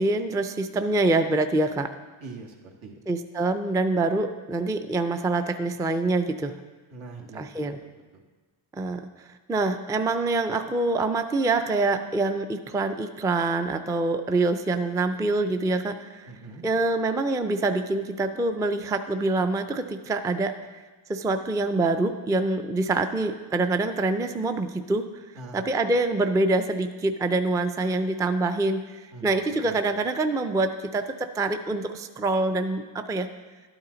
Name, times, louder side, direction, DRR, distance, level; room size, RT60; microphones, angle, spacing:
voice 1, 0.0-1.9 3.1-6.5 7.3-7.8 8.7-16.3 16.6-20.8 21.1-25.2 25.5-33.3, right 2 dB, 10° right, 8 dB, 0.3 m, -25 dB
voice 2, 2.2-2.5 2.8-3.0 6.9-7.4 7.8-8.2 16.3-16.7 25.4-25.7 29.1-29.8, right 3 dB, 75° right, 1 dB, 1.8 m, -43 dB
12.0 x 8.8 x 3.9 m, 1.4 s
cardioid pair, 110°, 49 cm